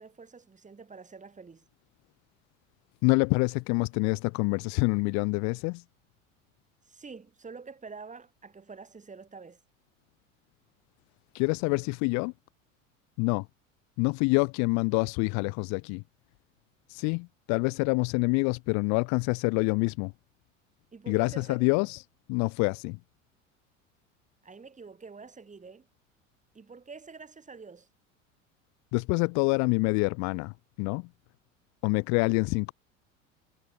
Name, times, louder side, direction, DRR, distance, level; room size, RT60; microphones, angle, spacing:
voice 1, 0.0-1.7 6.8-9.6 20.9-21.7 24.4-25.9 26.5-27.9, right 4 dB, 20° right, 6.2 m, -47 dB
voice 2, 3.0-5.8 11.3-12.3 13.2-13.5 14.0-16.0 16.9-20.1 21.1-22.0 22.3-23.0 28.9-31.1 31.8-32.7, left 32 dB, 45° left, 0.7 m, -26 dB
figure-of-eight pair, 70°, 39 cm